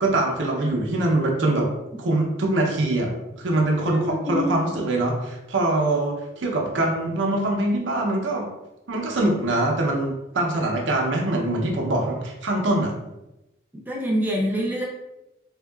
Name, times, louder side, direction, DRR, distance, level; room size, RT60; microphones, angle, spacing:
voice 1, 0.0-1.7 2.0-8.5 8.9-12.9, right 2 dB, 80° right, 0 dB, 0.7 m, -23 dB
voice 2, 3.8-4.5 13.9-14.9, equal, 10° right, -4 dB, 0.7 m, -26 dB
3.4 x 2.8 x 2.3 m, 0.94 s
head